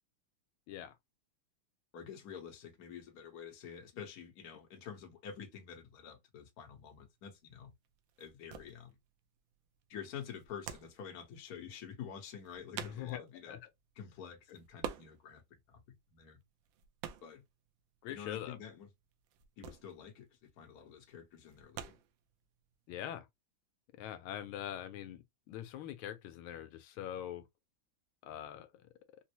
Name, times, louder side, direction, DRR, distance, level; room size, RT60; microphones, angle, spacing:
voice 1, 1.9-7.7 8.2-8.9 9.9-13.6 14.0-15.4 15.7-15.8 16.1-16.4 17.2-17.4 18.1-18.9 19.6-21.9, left 8 dB, 55° left, 1.2 m, -48 dB
sound 1, 6.7-23.0, right 9 dB, 75° right, 1.3 m, -49 dB
voice 2, 12.8-13.2 13.5-13.6 18.0-18.6 22.9-23.3 24.0-27.4 28.2-28.7, left 11 dB, 85° left, 1.4 m, -43 dB
4.1 x 2.0 x 2.8 m
omnidirectional pair, 2.3 m